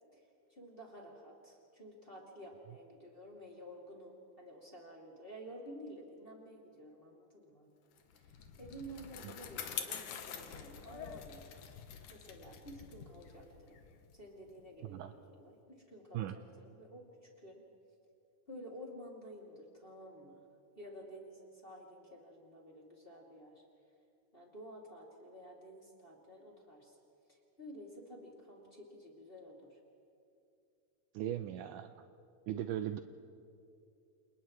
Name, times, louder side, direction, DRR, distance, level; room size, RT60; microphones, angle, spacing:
voice 1, 0.5-7.7 8.1-11.4 12.1-13.8 14.1-17.6 18.5-20.4 20.8-23.6 24.3-27.0 27.3-29.8, equal, 15° left, -3 dB, 2.4 m, -52 dB
Bicycle, 8.0-14.7, left 8 dB, 70° left, 2.5 m, -46 dB
voice 2, 14.8-15.1 16.1-16.4 31.1-31.9 32.5-33.0, right 12 dB, 80° right, 9 dB, 2.0 m, -38 dB
29.0 x 28.0 x 3.2 m, 2.5 s
omnidirectional pair, 3.9 m